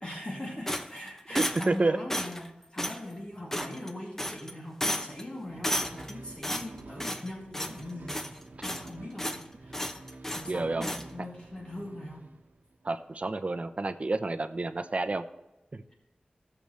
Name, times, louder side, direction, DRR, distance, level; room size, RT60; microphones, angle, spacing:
voice 1, 0.0-8.2 8.6-10.1 10.3-12.3, left 1 dB, 35° left, -3 dB, 2.4 m, -41 dB
sound 1, 0.7-1.8 2.1-2.5 2.8-3.0 3.5-3.9 4.2-4.5 4.8-5.2 5.6-6.1 6.4-7.3 7.5-7.8 8.1-8.9 9.2-9.4 9.7-10.5 10.8-11.0, equal, 15° left, 0.8 m, -33 dB
voice 2, 1.3-2.0 10.5-10.9 12.8-15.2 15.7-15.8, right 2 dB, 45° right, 7 dB, 0.7 m, -29 dB
sound 2, 5.4-12.9, right 2 dB, 80° right, 1.2 m, -49 dB
16.5 x 6.9 x 3.2 m, 0.97 s
wide cardioid pair, 70°, 3 cm